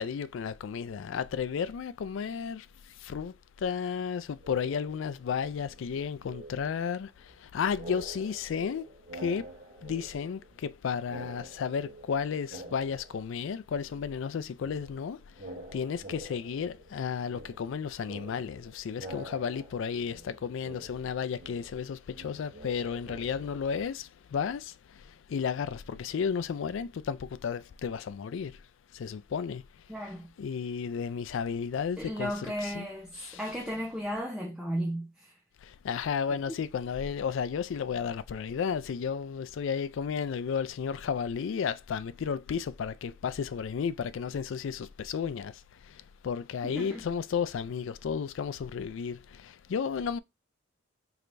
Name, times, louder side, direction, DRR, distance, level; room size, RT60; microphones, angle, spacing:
voice 1, 0.0-9.5 9.8-28.6 28.9-29.6 30.4-32.9 33.2-33.4 35.6-50.2, left 6 dB, 65° left, 0.3 m, -33 dB
sound 1, 4.4-5.2 5.5-7.4 7.7-10.8 11.0-13.6 13.9-23.8, right 1 dB, 50° right, 2.0 m, -47 dB
voice 2, 29.9-30.3 32.0-35.4 36.5-36.6 46.6-47.0, equal, 5° right, 0.6 m, -35 dB
4.8 x 3.3 x 2.5 m
head